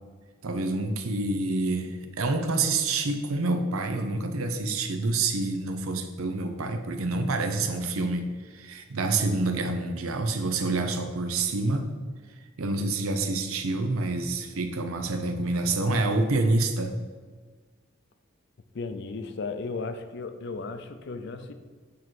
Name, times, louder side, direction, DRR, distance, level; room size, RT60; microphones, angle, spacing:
voice 1, 0.4-11.9 12.6-17.0, right 2 dB, 85° right, 7 dB, 0.7 m, -27 dB
voice 2, 18.7-21.5, left 4 dB, 55° left, 9 dB, 0.4 m, -35 dB
8.4 x 3.1 x 4.5 m, 1.5 s
head